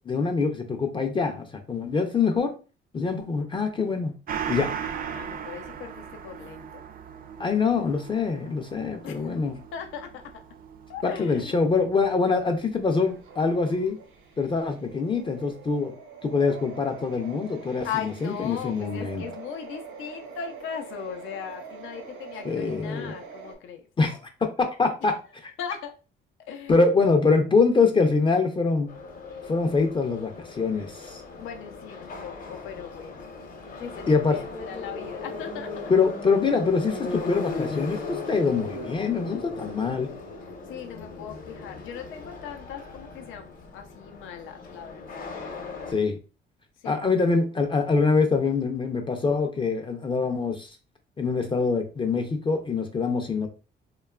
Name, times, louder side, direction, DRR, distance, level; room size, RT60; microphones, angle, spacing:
voice 1, 0.1-2.5 2.9-4.1 4.5-4.7 7.4-9.6 11.0-14.0 14.4-15.9 16.2-19.2 22.4-23.1 24.0-25.5 26.7-28.9 29.5-31.2 34.1-34.4 35.9-40.1 45.9-46.2 46.8-50.8 51.2-53.5, left 4 dB, 25° left, 0.4 m, -24 dB
Gong, 4.3-13.2 13.6-13.7, right 7 dB, 45° right, 0.4 m, -38 dB
voice 2, 5.1-6.8 9.0-9.4 9.7-10.4 10.9-11.6 17.8-23.8 25.6-25.9 26.5-26.8 31.4-33.3 33.8-35.9 40.7-45.3 46.8-47.0, left 8 dB, 85° left, 0.5 m, -38 dB
sound 1, 12.7-23.6, right 5 dB, 75° right, 0.7 m, -44 dB
Subway metro underground, 28.9-45.9, left 3 dB, 45° left, 0.8 m, -38 dB
2.8 x 2.2 x 2.2 m
cardioid pair, 90°, 20 cm